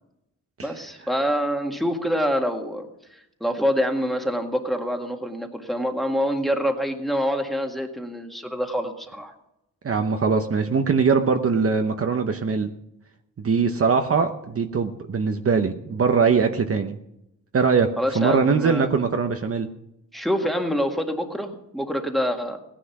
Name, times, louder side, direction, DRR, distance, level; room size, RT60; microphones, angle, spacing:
voice 1, 0.6-9.3 18.0-18.9 20.1-22.6, equal, ahead, 3 dB, 1.8 m, -26 dB
voice 2, 9.8-12.7 13.4-17.0 17.5-19.7, right 5 dB, 45° right, 6 dB, 0.9 m, -22 dB
17.0 x 10.0 x 6.0 m, 0.83 s
wide cardioid pair, 120°, 32 cm